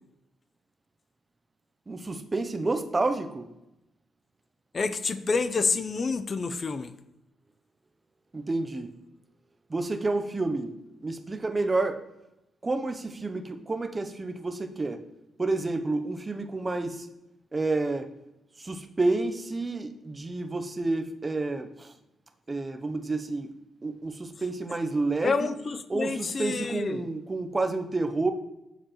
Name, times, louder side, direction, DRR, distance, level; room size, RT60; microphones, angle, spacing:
voice 1, 1.9-3.5 8.3-8.9 9.7-10.7 11.0-12.0 12.6-15.0 15.4-17.1 17.5-18.1 18.6-21.9 22.5-23.5 23.8-25.5 25.9-28.3, right 3 dB, 20° right, 8 dB, 0.5 m, -29 dB
voice 2, 4.7-6.9 25.2-27.1, left 4 dB, 35° left, 13 dB, 0.4 m, -28 dB
7.5 x 6.7 x 2.9 m, 0.91 s
cardioid pair, 135°, 0 cm